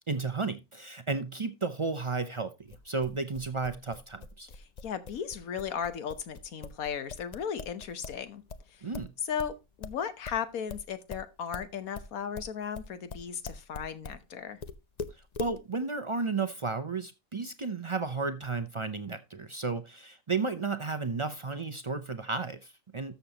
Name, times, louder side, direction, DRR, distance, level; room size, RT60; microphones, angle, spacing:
voice 1, 0.1-4.5 8.8-9.1 15.4-23.2, right 4 dB, 55° right, 0.3 m, -33 dB
sound 1, 2.7-8.2 8.5-14.2 14.6-15.6, left 4 dB, 45° left, 0.5 m, -42 dB
voice 2, 4.8-8.4 8.7-8.8 9.2-14.6, left 7 dB, 75° left, 1.5 m, -36 dB
13.0 x 6.8 x 2.9 m
omnidirectional pair, 1.5 m